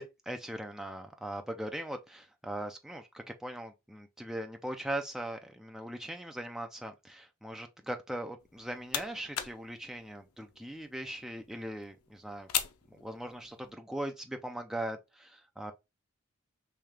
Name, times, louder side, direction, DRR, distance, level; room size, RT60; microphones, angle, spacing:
voice 1, 0.0-12.5 12.9-15.7, right 1 dB, ahead, 0.3 m, -40 dB
sound 1, 8.4-13.7, left 10 dB, 85° left, 0.5 m, -40 dB
3.2 x 2.7 x 3.4 m
head